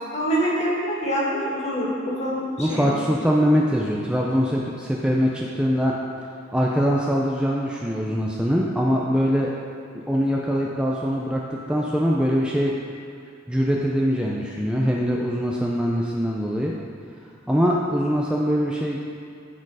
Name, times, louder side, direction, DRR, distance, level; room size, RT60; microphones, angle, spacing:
voice 1, 0.1-3.0, equal, 35° left, -5 dB, 2.1 m, -25 dB
voice 2, 2.6-5.9 6.5-9.5 9.9-12.8 13.5-16.8 17.5-19.0, equal, 5° right, -3 dB, 0.5 m, -22 dB
12.5 x 4.5 x 4.8 m, 2.5 s
head